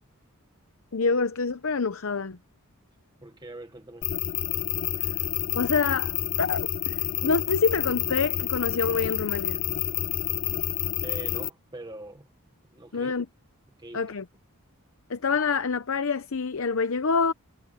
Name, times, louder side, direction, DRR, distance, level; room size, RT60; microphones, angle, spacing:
voice 1, 0.9-2.4 5.5-9.6 12.9-13.3 13.9-14.2 15.1-17.3, left 4 dB, 65° left, 0.7 m, -26 dB
voice 2, 3.2-4.2 11.0-12.3 12.7-13.1 13.8-14.1, right 1 dB, 20° right, 1.2 m, -42 dB
sound 1, 4.0-11.5, left 12 dB, 40° left, 0.3 m, -29 dB
head